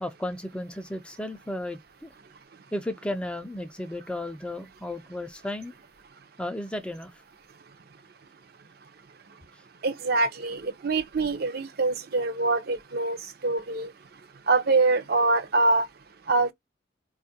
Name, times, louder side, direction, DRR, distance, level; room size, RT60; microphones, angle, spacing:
voice 1, 0.0-2.1 2.7-5.7 6.4-7.1 9.5-9.6, left 1 dB, 5° left, 0.3 m, -34 dB
voice 2, 9.8-13.2 13.4-13.9 14.5-15.9 16.3-16.5, right 3 dB, 50° right, 0.5 m, -24 dB
4.2 x 2.4 x 2.6 m
head